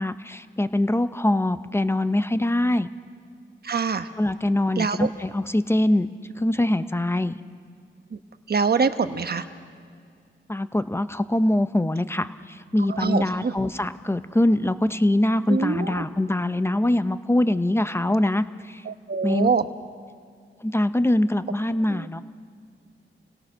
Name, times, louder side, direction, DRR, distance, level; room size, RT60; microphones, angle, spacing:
voice 1, 0.0-2.9 4.2-6.1 6.4-7.4 10.5-18.8 19.2-19.5 20.6-22.2, left 1 dB, 10° left, 12 dB, 0.8 m, -23 dB
voice 2, 3.6-4.1 4.8-5.1 8.1-8.2 8.5-9.5 12.9-13.5 15.5-16.0 18.9-19.6 21.9-22.1, right 5 dB, 50° right, 9 dB, 1.1 m, -24 dB
28.0 x 17.5 x 6.3 m, 2.2 s
cardioid pair, 75°, 21 cm